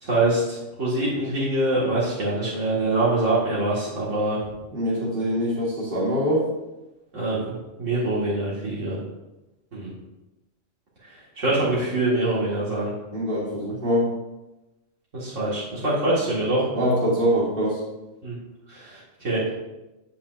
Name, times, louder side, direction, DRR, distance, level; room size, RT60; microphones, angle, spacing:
voice 1, 0.0-4.4 7.1-7.5 7.8-9.0 9.7-9.9 11.0-12.9 15.1-16.7 18.2-18.3 18.7-19.5, right 2 dB, 70° right, -8 dB, 2.2 m, -24 dB
voice 2, 4.7-6.5 11.6-11.7 13.1-14.1 16.7-17.8, equal, 40° right, -6 dB, 2.6 m, -23 dB
8.5 x 8.4 x 2.5 m, 1.0 s
omnidirectional pair, 1.3 m